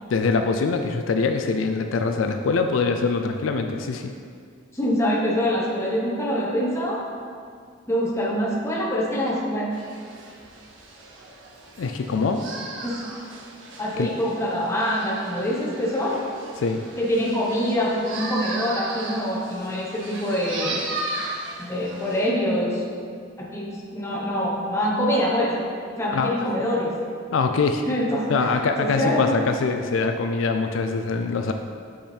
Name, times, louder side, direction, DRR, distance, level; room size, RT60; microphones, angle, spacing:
voice 1, 0.1-4.1 11.8-12.4 14.0-14.1 16.6-16.8 26.1-26.5 27.3-27.8 28.3-31.5, left 4 dB, 80° left, 6 dB, 0.4 m, -23 dB
voice 2, 4.7-7.0 7.9-9.7 12.8-13.0 13.8-16.2 17.0-20.8 21.6-22.8 23.4-25.5 26.0-26.9 27.9-28.2 28.8-29.4, equal, 15° left, -5 dB, 1.0 m, -25 dB
sound 1, 9.7-22.3, right 2 dB, 70° right, 0.8 m, -36 dB
5.6 x 5.0 x 4.4 m, 2.2 s
head